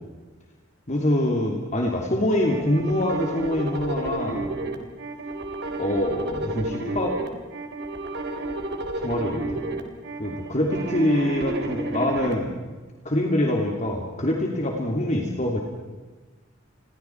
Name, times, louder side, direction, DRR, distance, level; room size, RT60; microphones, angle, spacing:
voice 1, 0.9-4.5 5.8-7.2 9.0-9.6 10.2-12.5 13.0-15.6, left 1 dB, 40° left, 0 dB, 3.0 m, -25 dB
sound 1, 2.4-12.3, right 2 dB, 60° right, 3.5 m, -31 dB
30.0 x 23.0 x 4.7 m, 1.3 s
head